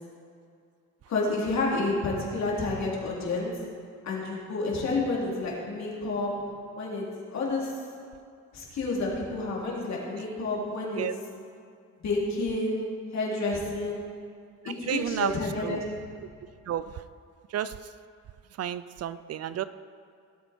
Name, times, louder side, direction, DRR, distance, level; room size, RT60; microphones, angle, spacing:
voice 1, 1.1-3.6 4.0-6.3 6.7-7.8 8.5-11.1 12.0-14.0 14.6-16.0, left 3 dB, 65° left, -4 dB, 3.4 m, -30 dB
voice 2, 14.9-15.3 15.6-15.8 16.7-17.0 17.5-17.8 18.6-19.6, right 10 dB, 55° right, 14 dB, 0.5 m, -31 dB
17.5 x 8.3 x 4.5 m, 2.4 s
cardioid pair, 90°, 30 cm